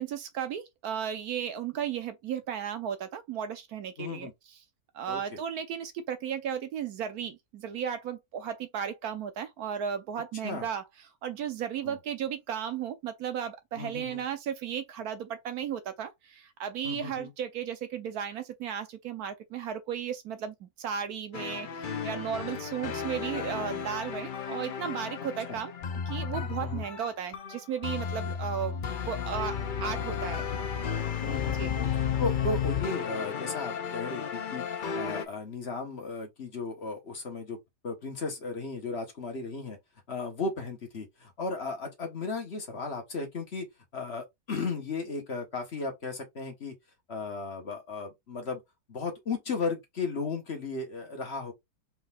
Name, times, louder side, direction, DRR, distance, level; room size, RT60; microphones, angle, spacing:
voice 1, 0.0-4.3 4.9-10.8 11.2-25.7 26.1-30.4 31.2-31.8, right 8 dB, 70° right, 1.2 m, -35 dB
voice 2, 4.0-4.3 5.1-5.4 10.4-10.7 11.8-12.0 13.7-14.2 16.8-17.3 25.5-25.6 26.6-26.8 31.2-31.9 32.2-37.6 37.8-39.8 40.1-43.7 43.9-46.7 47.1-48.6 48.9-51.5, left 3 dB, 45° left, 1.3 m, -35 dB
sound 1, 21.3-35.2, left 7 dB, 80° left, 0.4 m, -33 dB
4.4 x 3.8 x 2.4 m
omnidirectional pair, 1.7 m